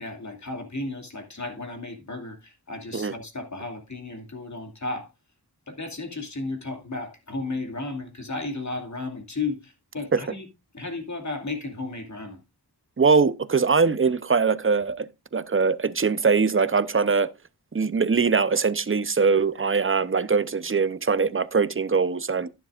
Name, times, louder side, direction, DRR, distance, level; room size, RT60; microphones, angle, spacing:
voice 1, 0.0-5.1 5.7-10.5 10.7-12.4, left 3 dB, 45° left, 2.6 m, -34 dB
voice 2, 13.0-17.3 17.7-22.5, right 5 dB, 35° right, 0.7 m, -22 dB
11.5 x 10.5 x 2.5 m
wide cardioid pair, 65°, 39 cm